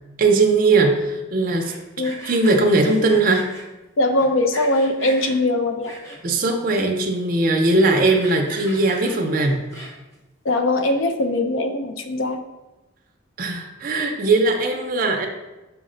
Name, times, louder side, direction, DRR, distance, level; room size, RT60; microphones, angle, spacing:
voice 1, 0.2-1.7 2.2-3.5 6.2-9.6 13.4-15.3, right 3 dB, 45° right, 2 dB, 0.4 m, -19 dB
Sawing, 1.5-3.6 4.2-5.4 5.8-6.4 6.9-7.0 7.2-7.3 7.6-10.1, right 1 dB, 15° left, 0.7 m, -38 dB
voice 2, 4.0-5.9 10.4-12.4, left 2 dB, 75° left, 7 dB, 0.4 m, -21 dB
5.7 x 2.1 x 3.7 m, 1.1 s
head